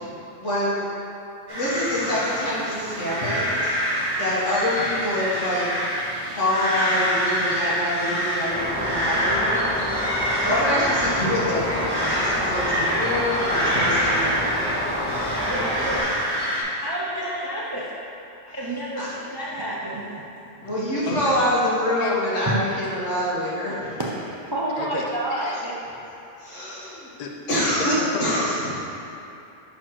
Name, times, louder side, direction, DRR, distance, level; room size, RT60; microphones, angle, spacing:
voice 1, 0.4-0.8 1.5-3.7 4.2-5.7 6.3-9.7 10.4-14.6 15.3-15.9 19.0-19.1 20.6-24.0 26.4-27.1 27.5-27.9 28.2-28.7, left 1 dB, 75° left, -8 dB, 1.9 m, -26 dB
sound 1, 1.5-16.6, equal, 20° right, 1.5 m, -26 dB
sound 2, 8.5-16.0, equal, 10° left, 0.9 m, -28 dB
voice 2, 15.4-16.0 16.7-17.9 18.4-20.2 20.4-20.7 22.5-22.6 24.0-24.1 24.5-25.7, right 1 dB, 35° right, -5 dB, 0.4 m, -29 dB
voice 3, 21.1-21.4 22.0-22.3 24.8-25.7 27.2-27.4 27.8-28.8, left 3 dB, 50° left, 1 dB, 0.5 m, -34 dB
6.3 x 4.4 x 4.6 m, 2.8 s
omnidirectional pair, 1.3 m